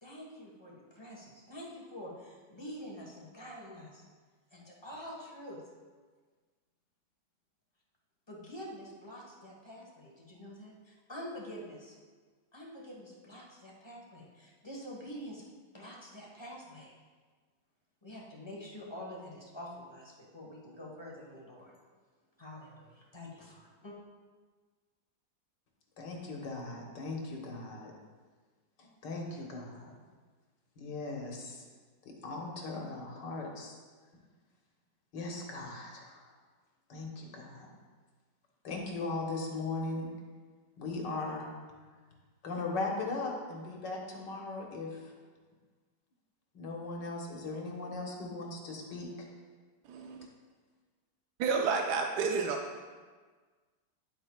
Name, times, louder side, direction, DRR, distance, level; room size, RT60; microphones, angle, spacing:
voice 1, 0.0-4.0 4.5-5.6 8.3-11.9 12.5-15.4 15.7-16.9 18.0-21.7 22.4-23.9, equal, 15° left, -3 dB, 1.2 m, -46 dB
voice 2, 26.0-27.9 28.8-29.9 30.8-31.6 32.1-33.8 35.1-36.3 36.9-37.7 38.6-40.1 40.8-41.5 42.4-45.1 46.5-49.3, left 3 dB, 80° left, 0 dB, 1.9 m, -38 dB
voice 3, 49.9-50.2 51.4-52.6, right 5 dB, 70° right, 2 dB, 1.1 m, -30 dB
10.5 x 7.9 x 2.3 m, 1.5 s
omnidirectional pair, 1.9 m